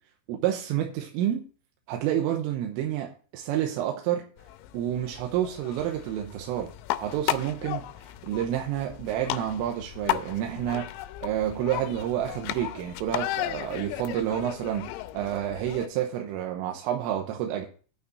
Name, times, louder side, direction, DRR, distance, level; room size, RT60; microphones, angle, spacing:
voice 1, 0.3-1.5 1.9-4.3 4.7-6.7 7.0-10.9 11.2-17.7, right 11 dB, 85° right, 3.6 m, -29 dB
sound 1, 4.4-15.9, left 15 dB, 90° left, 3.4 m, -35 dB
9.6 x 5.6 x 7.9 m
omnidirectional pair, 5.8 m